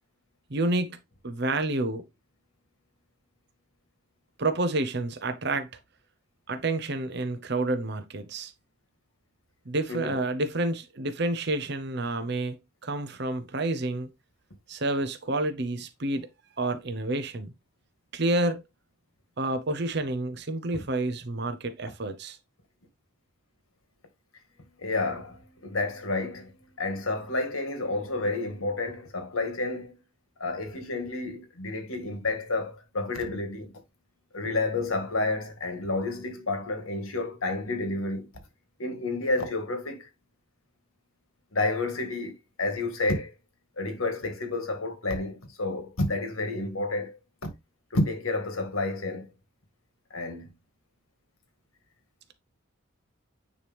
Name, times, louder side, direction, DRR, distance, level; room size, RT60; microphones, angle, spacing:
voice 1, 0.5-1.0 1.2-2.0 4.4-5.7 6.5-8.5 9.7-12.6 12.8-14.1 14.7-16.3 16.6-17.5 18.1-18.6 19.4-22.4, right 2 dB, 55° right, 0.8 m, -29 dB
voice 2, 9.9-10.2 24.8-26.5 26.8-30.0 30.4-33.7 34.3-38.3 38.8-40.1 41.5-43.3 43.8-47.2 47.4-47.5 47.9-49.3 50.1-50.5, left 2 dB, 90° left, 1.8 m, -30 dB
9.4 x 3.2 x 3.4 m
head